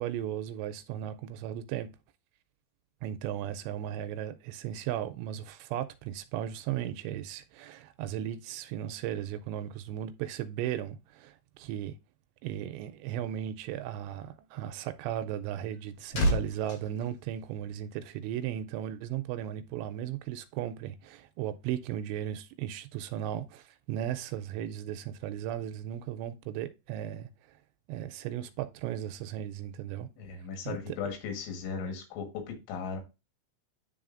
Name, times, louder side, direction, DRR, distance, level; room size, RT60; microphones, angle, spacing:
voice 1, 0.0-1.9 3.0-12.0 12.4-27.6 27.9-30.1 30.7-30.8, right 11 dB, 85° right, 2.7 m, -36 dB
sound 1, 15.6-18.1 18.4-18.6, equal, 60° left, 4.0 m, -32 dB
voice 2, 30.2-33.0, left 5 dB, 90° left, 3.9 m, -37 dB
10.0 x 3.7 x 2.5 m
omnidirectional pair, 5.2 m